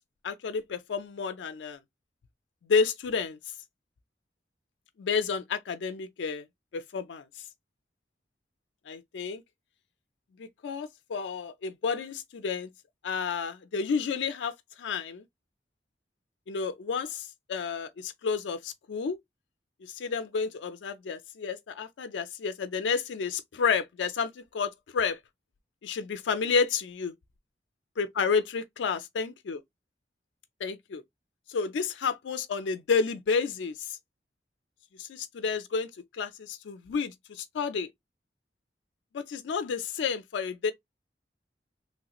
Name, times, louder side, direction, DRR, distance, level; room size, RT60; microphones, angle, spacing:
voice 1, 0.2-1.8 2.6-3.4 5.0-6.4 6.7-7.2 8.9-9.4 10.4-12.7 13.0-14.5 14.8-15.2 16.5-19.2 19.8-25.2 25.8-27.1 28.0-29.6 30.6-31.0 31.5-34.0 35.0-37.9 39.1-40.7, left 5 dB, 90° left, 0.4 m, -30 dB
3.1 x 2.4 x 2.9 m
head